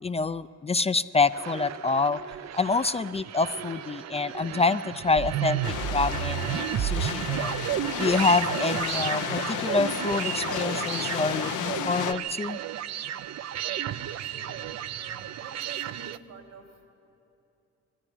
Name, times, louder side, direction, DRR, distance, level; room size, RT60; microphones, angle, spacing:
voice 1, 0.0-2.2 2.5-7.5 8.0-12.6, left 3 dB, 20° left, 13 dB, 0.4 m, -27 dB
sound 1, 1.2-16.2, right 11 dB, 60° right, 0.6 m, -32 dB
sound 2, 5.6-12.1, left 11 dB, 80° left, 0.8 m, -33 dB
voice 2, 15.0-16.9, right 5 dB, 85° right, 2 dB, 3.8 m, -48 dB
20.5 x 14.0 x 9.9 m, 2.9 s
cardioid pair, 90°, 30 cm